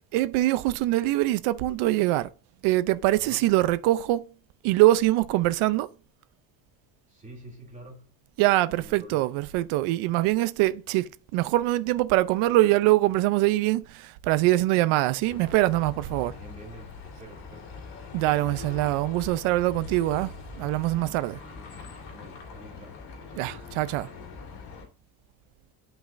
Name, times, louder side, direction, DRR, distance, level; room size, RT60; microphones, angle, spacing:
voice 1, 0.1-2.3 2.6-4.3 4.6-5.9 8.4-16.3 18.1-21.4 23.4-24.1, right 17 dB, 75° right, 0.7 m, -23 dB
voice 2, 7.1-8.1 8.8-9.3 16.3-18.2 21.4-23.5, right 2 dB, 15° right, 2.7 m, -48 dB
sound 1, 15.2-24.9, left 5 dB, 55° left, 2.8 m, -42 dB
10.0 x 5.7 x 2.6 m
cardioid pair, 160°, 49 cm